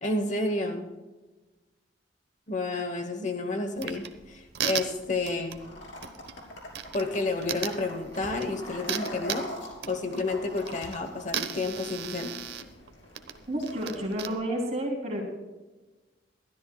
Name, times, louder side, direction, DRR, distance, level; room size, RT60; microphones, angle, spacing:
voice 1, 0.0-0.9 2.5-5.6 6.9-9.5 9.9-12.3, left 2 dB, 40° left, 6 dB, 1.0 m, -30 dB
sound 1, 3.8-14.3, right 9 dB, 60° right, 0.9 m, -38 dB
sound 2, 5.6-14.3, left 1 dB, 80° left, 3.0 m, -44 dB
voice 2, 13.5-15.2, right 1 dB, 35° right, -1 dB, 3.1 m, -30 dB
21.5 x 13.0 x 2.3 m, 1.2 s
head